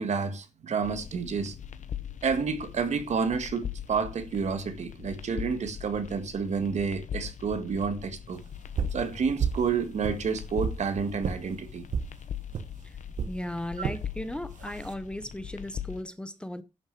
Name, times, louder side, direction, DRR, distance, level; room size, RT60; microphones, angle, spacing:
voice 1, 0.0-1.5 2.2-8.4 8.9-11.8, right 5 dB, 65° right, 1.7 m, -29 dB
sound 1, 0.8-16.0, left 9 dB, 80° left, 1.0 m, -41 dB
sound 2, 8.8-9.0 9.4-9.7 10.0-10.8 11.2-11.4 11.9-12.1 12.5-12.7 13.2-13.4 13.8-14.0 14.6-14.9, right 7 dB, 85° right, 1.2 m, -30 dB
voice 2, 13.3-16.6, left 1 dB, 10° left, 0.7 m, -36 dB
10.5 x 6.5 x 5.9 m
wide cardioid pair, 150°, 13 cm